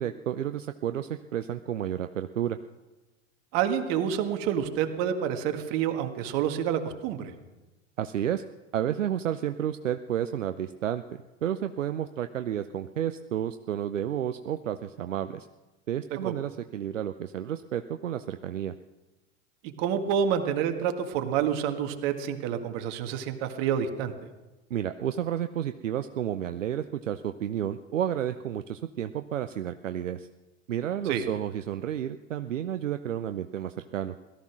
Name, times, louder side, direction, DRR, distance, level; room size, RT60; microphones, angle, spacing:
voice 1, 0.0-2.6 8.0-8.4 8.7-15.5 15.9-18.7 24.7-30.3 30.7-34.1, right 10 dB, 80° right, 9 dB, 0.7 m, -31 dB
voice 2, 3.5-7.3 16.1-16.3 19.6-24.1 31.1-31.2, right 8 dB, 50° right, 6 dB, 1.8 m, -28 dB
17.5 x 13.5 x 6.2 m, 1.1 s
figure-of-eight pair, 90°, 38 cm